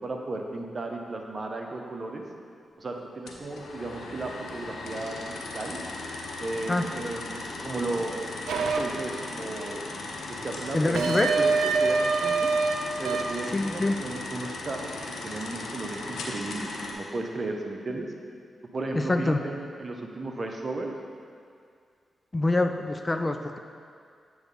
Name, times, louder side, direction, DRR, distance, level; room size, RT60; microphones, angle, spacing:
voice 1, 0.0-2.2 2.8-5.8 6.4-9.8 10.3-12.5 13.0-18.1 18.7-20.9, right 2 dB, 50° right, 2 dB, 0.8 m, -35 dB
sound 1, 3.3-16.9, left 2 dB, 80° left, 0.7 m, -37 dB
sound 2, 8.5-8.8 11.0-12.7 13.1-13.4, right 4 dB, 85° right, 0.4 m, -24 dB
voice 2, 10.7-11.3 13.5-14.0 18.9-19.4 22.3-23.6, left 2 dB, 30° left, 7 dB, 0.4 m, -25 dB
7.8 x 3.1 x 5.3 m, 2.2 s
supercardioid pair, 45°, 0 cm